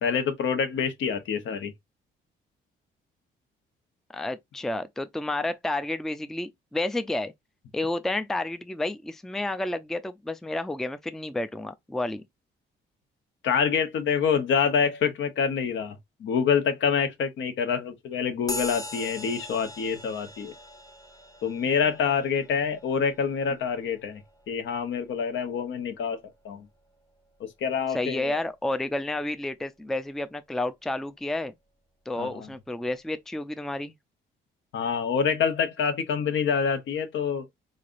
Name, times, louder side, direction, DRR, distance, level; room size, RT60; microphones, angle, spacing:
voice 1, 0.0-1.7 13.4-20.5 21.4-24.2 24.5-26.2 26.4-26.6 27.4-28.4 32.2-32.5 34.7-37.4, left 6 dB, 70° left, 1.0 m, -26 dB
voice 2, 4.1-7.3 7.7-12.2 27.9-31.5 32.1-33.9, left 2 dB, ahead, 0.4 m, -30 dB
sound 1, 18.5-26.4, left 1 dB, 20° left, 0.8 m, -41 dB
3.8 x 3.2 x 2.5 m
cardioid pair, 90°, 20 cm